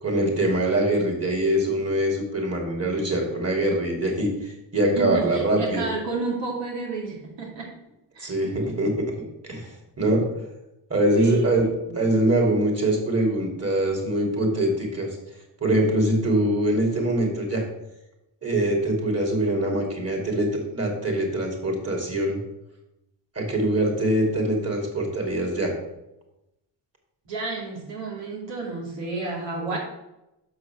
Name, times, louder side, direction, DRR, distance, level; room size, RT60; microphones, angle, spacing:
voice 1, 0.0-5.8 8.2-8.9 9.4-9.7 10.0-10.3 10.9-15.2 15.6-17.6 18.4-22.4 23.3-25.7, right 1 dB, 35° right, 1 dB, 3.1 m, -23 dB
voice 2, 4.7-7.7 8.1-8.3 8.6-8.7 11.2-11.5 11.8-12.0 27.2-29.8, right 3 dB, 80° right, -2 dB, 2.7 m, -31 dB
6.7 x 4.8 x 6.2 m, 0.90 s
supercardioid pair, 60°, 43 cm